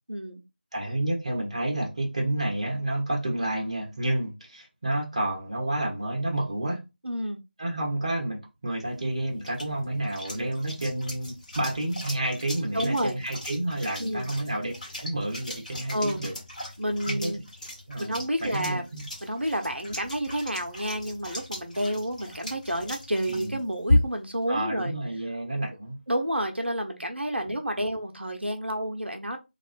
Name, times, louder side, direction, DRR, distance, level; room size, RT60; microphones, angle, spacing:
voice 1, 0.1-0.4 7.0-7.4 12.7-13.2 14.0-14.3 15.9-16.2 16.8-17.4 18.0-18.8 19.2-25.0 26.1-29.4, equal, 90° right, 0.6 m, -30 dB
voice 2, 0.7-6.8 7.6-14.7 15.0-16.3 17.1-17.3 17.9-19.0 23.3-23.6 24.5-26.0, right 1 dB, 35° right, 0.7 m, -30 dB
sound 1, 8.8-24.4, left 1 dB, 45° left, 1.1 m, -35 dB
2.4 x 2.2 x 2.4 m
figure-of-eight pair, 165°, 6 cm